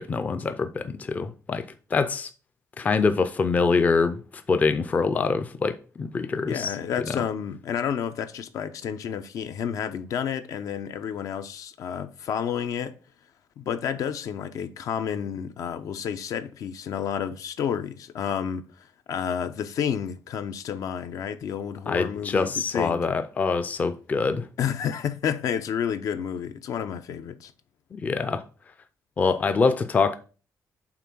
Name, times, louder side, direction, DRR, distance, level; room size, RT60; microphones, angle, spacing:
voice 1, 0.0-2.3 2.8-4.2 4.5-6.7 21.9-24.5 27.9-28.4 29.2-30.2, left 4 dB, 25° left, 0.4 m, -24 dB
voice 2, 6.5-12.9 13.6-23.0 24.6-27.5, left 8 dB, 70° left, 0.6 m, -30 dB
5.9 x 3.8 x 6.0 m
cardioid pair, 170°, 6 cm